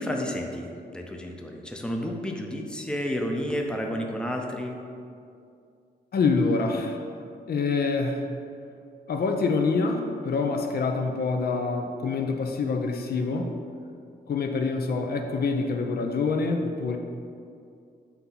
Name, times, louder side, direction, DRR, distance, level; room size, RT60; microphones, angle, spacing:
voice 1, 0.0-4.8, equal, 5° left, 1 dB, 0.6 m, -31 dB
voice 2, 6.1-7.0 7.5-8.3 9.1-13.5 14.3-17.0, left 4 dB, 65° left, 3 dB, 0.6 m, -26 dB
7.9 x 2.8 x 5.6 m, 2.4 s
cardioid pair, 105°, 17 cm